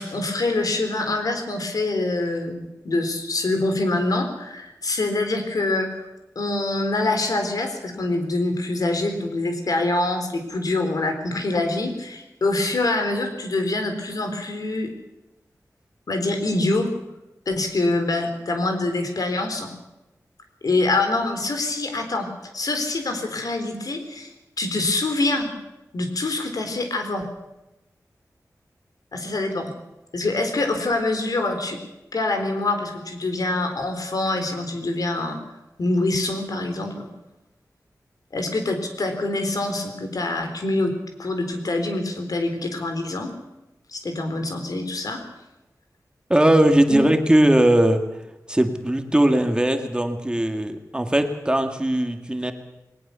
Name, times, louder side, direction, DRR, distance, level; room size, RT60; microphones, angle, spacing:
voice 1, 0.0-6.0 6.4-14.9 16.1-16.9 17.5-19.7 20.6-22.3 22.5-24.3 24.6-25.5 25.9-27.3 29.1-29.7 30.1-31.8 32.1-35.4 35.8-37.1 38.3-40.9 41.2-43.3 43.9-45.2 46.9-47.1, left 2 dB, 75° left, 6 dB, 3.9 m, -25 dB
voice 2, 46.3-48.0 48.5-52.5, right 1 dB, 15° right, 6 dB, 1.9 m, -19 dB
20.5 x 19.0 x 6.9 m, 0.98 s
wide cardioid pair, 105°, 6 cm